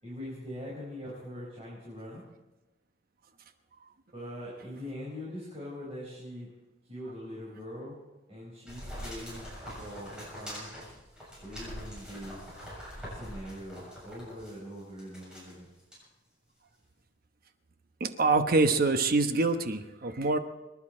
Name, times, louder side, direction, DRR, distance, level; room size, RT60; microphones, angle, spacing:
voice 1, 0.0-2.2 4.1-6.5 6.8-8.0 8.3-10.7 11.4-12.6 13.1-15.7, equal, 30° right, -6 dB, 5.1 m, -42 dB
sound 1, 8.7-14.5 15.0-15.5 15.9-16.0, equal, 5° right, 7.3 m, -43 dB
voice 2, 18.0-20.4, right 3 dB, 50° right, 8 dB, 1.1 m, -25 dB
26.0 x 11.0 x 4.4 m, 1.0 s
head